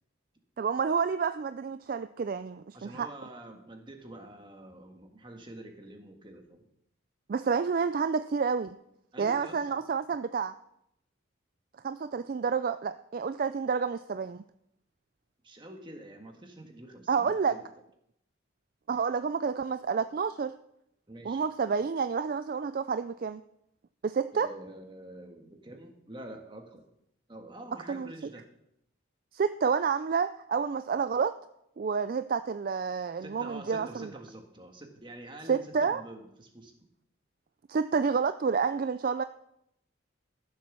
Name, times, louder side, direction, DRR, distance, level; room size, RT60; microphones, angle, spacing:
voice 1, 0.6-3.1 7.3-8.8 9.2-10.5 11.8-14.4 17.1-17.6 18.9-20.6 21.2-23.4 24.0-24.5 27.9-28.1 29.3-31.3 31.8-34.1 35.5-36.0 37.7-39.2, right 5 dB, 45° right, 11 dB, 0.3 m, -29 dB
voice 2, 2.7-6.7 9.1-9.8 15.4-17.7 21.1-21.5 24.3-26.9 27.3-28.5 33.2-36.7, right 1 dB, 25° right, 4 dB, 1.6 m, -46 dB
14.5 x 7.3 x 6.1 m, 0.78 s
head